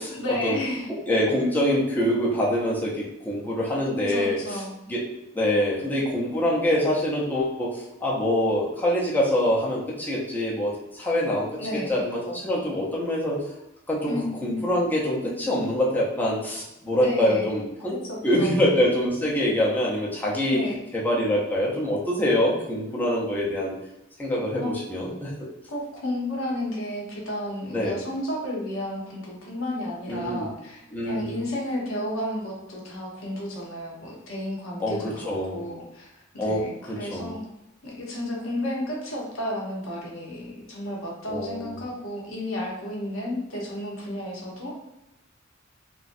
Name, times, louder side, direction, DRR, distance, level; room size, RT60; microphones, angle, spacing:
voice 1, 0.1-0.9 4.1-4.7 11.6-12.0 14.1-14.7 16.9-17.5 17.9-18.5 20.5-20.8 24.6-24.7 25.7-37.4 37.8-44.8, left 1 dB, 80° left, -3 dB, 0.9 m, -32 dB
voice 2, 1.1-4.4 4.9-5.0 5.3-11.5 11.7-13.4 13.9-17.9 18.2-20.6 20.9-23.7 24.2-25.3 27.7-28.0 30.1-30.5 30.9-31.4 34.8-35.6 36.4-36.6 37.0-37.3 41.3-41.7, left 1 dB, 10° left, -5 dB, 0.6 m, -25 dB
3.0 x 2.5 x 2.5 m, 0.90 s
head